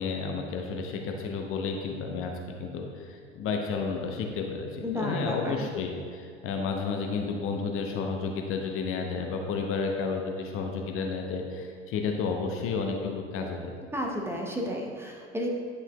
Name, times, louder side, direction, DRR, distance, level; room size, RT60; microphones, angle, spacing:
voice 1, 0.0-13.7, left 4 dB, 35° left, 2 dB, 0.7 m, -31 dB
voice 2, 4.8-5.7 13.9-15.5, equal, 5° right, -1 dB, 0.8 m, -32 dB
9.9 x 5.8 x 2.2 m, 2.1 s
figure-of-eight pair, 75°, 36 cm